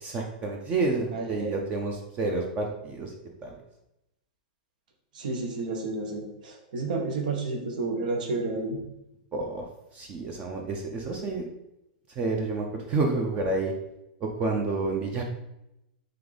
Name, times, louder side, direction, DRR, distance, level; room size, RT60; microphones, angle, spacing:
voice 1, 0.0-3.1 3.4-3.5 9.3-9.7 9.9-11.4 12.1-13.7 14.2-15.2, right 3 dB, 30° right, 1 dB, 0.5 m, -29 dB
voice 2, 1.1-1.6 5.1-8.8, right 3 dB, 75° right, 2 dB, 1.0 m, -31 dB
3.4 x 3.3 x 3.9 m, 0.89 s
hypercardioid pair, 135°, 5 cm